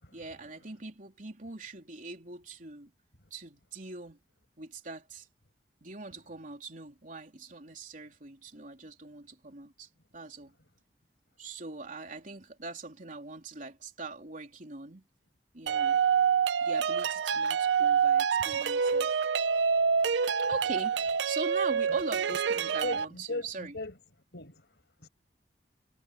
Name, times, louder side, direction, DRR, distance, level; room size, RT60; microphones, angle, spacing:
voice 1, 0.1-2.9 3.3-4.2 4.6-5.3 5.8-10.5 11.4-15.0 15.5-16.0 16.6-19.2 20.4-23.8, right 3 dB, 50° right, 3.6 m, -42 dB
sound 1, 15.7-23.1, right 6 dB, 80° right, 0.5 m, -27 dB
voice 2, 22.8-23.9 24.3-25.1, left 2 dB, 65° left, 5.5 m, -39 dB
head